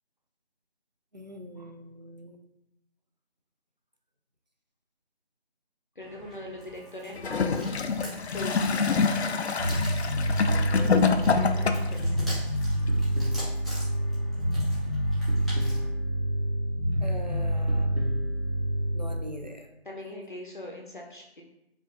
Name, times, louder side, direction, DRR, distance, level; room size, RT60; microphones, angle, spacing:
voice 1, 1.1-2.4 17.0-17.9 18.9-19.7, equal, 45° right, 3 dB, 0.4 m, -42 dB
voice 2, 6.0-7.7 8.3-9.2 10.9-12.5 19.8-21.4, left 1 dB, 50° left, -1 dB, 0.7 m, -41 dB
sound 1, 6.0-15.9, equal, ahead, 0.6 m, -45 dB
Gurgling / Toilet flush, 7.2-12.0 12.9-13.0, left 5 dB, 85° left, 0.5 m, -26 dB
Bass guitar, 9.6-19.2, equal, 70° right, 1.5 m, -27 dB
4.8 x 2.6 x 2.8 m, 0.87 s
figure-of-eight pair, 175°, 32 cm